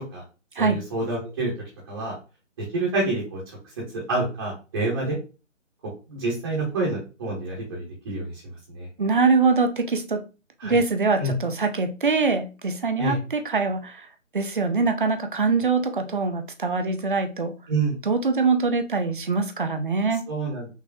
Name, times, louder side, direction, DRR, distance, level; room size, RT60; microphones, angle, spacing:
voice 1, 0.6-1.5 1.8-2.1 2.7-3.4 3.9-5.2 6.1-8.9 10.6-10.8 11.2-11.3 13.0-13.2 17.7-18.0 20.3-20.7, right 2 dB, 20° right, -5 dB, 1.3 m, -27 dB
voice 2, 9.0-10.2 10.6-14.0 14.3-17.5 18.1-20.2, right 4 dB, 40° right, 7 dB, 0.7 m, -23 dB
6.0 x 2.9 x 2.7 m, 0.32 s
figure-of-eight pair, 150°, 39 cm